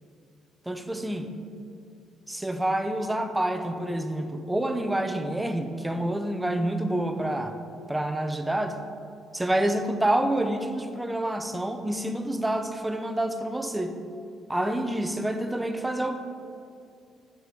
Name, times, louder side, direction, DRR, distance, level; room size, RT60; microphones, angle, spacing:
voice 1, 0.7-1.3 2.3-7.5 7.9-8.8 9.3-14.0 14.5-16.2, right 1 dB, 10° right, 7 dB, 0.8 m, -28 dB
6.9 x 6.0 x 6.2 m, 2.5 s
supercardioid pair, 65°, 0 cm